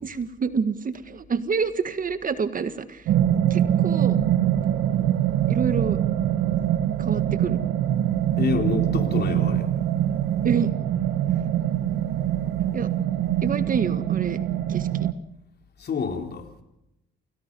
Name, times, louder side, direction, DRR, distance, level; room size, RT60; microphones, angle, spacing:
voice 1, 0.0-3.0 3.5-4.2 5.5-6.0 7.0-7.6 10.4-10.7 12.7-12.9 13.4-14.4 14.7-15.1, right 5 dB, 45° right, 11 dB, 1.7 m, -27 dB
sound 1, 3.1-15.1, right 11 dB, 90° right, 1.2 m, -23 dB
voice 2, 8.4-9.7 15.8-16.5, left 6 dB, 55° left, 4 dB, 3.8 m, -28 dB
29.0 x 18.5 x 5.5 m, 0.84 s
cardioid pair, 90°, 20 cm